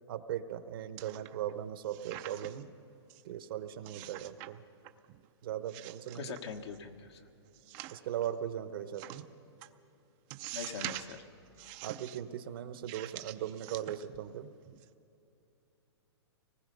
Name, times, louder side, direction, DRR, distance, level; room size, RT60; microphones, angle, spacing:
voice 1, 0.1-2.7 3.2-4.6 5.4-6.4 7.9-9.3 11.8-14.5, right 10 dB, 55° right, 11 dB, 1.1 m, -38 dB
sound 1, 1.0-1.5 1.8-2.7 3.1-3.2 3.9-4.5 4.8-5.3 5.7-6.8 7.5-8.3 8.9-9.2 9.6-9.7 10.3-11.2 11.6-12.2 12.8-14.3 14.7-14.8, right 15 dB, 30° right, 0.6 m, -45 dB
voice 2, 6.1-7.2 10.5-11.2, left 6 dB, 75° left, 3 dB, 1.5 m, -42 dB
25.0 x 19.5 x 5.4 m, 2.8 s
hypercardioid pair, 155°, 14 cm